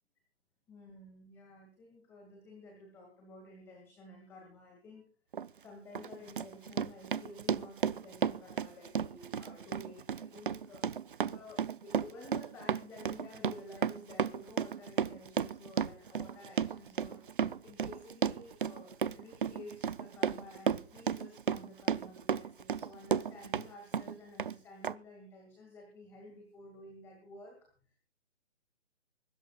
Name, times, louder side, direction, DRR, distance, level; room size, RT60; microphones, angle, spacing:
voice 1, 0.7-5.0 5.6-10.9 11.3-28.0, left 2 dB, 5° left, 0 dB, 2.1 m, -52 dB
Run, 5.3-5.5 5.9-23.7 23.9-24.5 24.8-24.9, right 7 dB, 50° right, 0.6 m, -33 dB
25.0 x 13.5 x 2.3 m, 0.42 s
hypercardioid pair, 170°, 35 cm